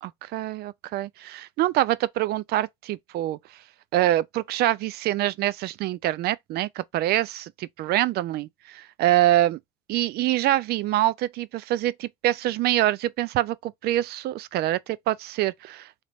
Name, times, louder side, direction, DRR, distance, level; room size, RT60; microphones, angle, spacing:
voice 1, 0.0-3.4 3.9-9.6 9.9-16.0, right 14 dB, 70° right, 0.4 m, -25 dB
3.3 x 2.9 x 4.1 m
cardioid pair, 110°, 17 cm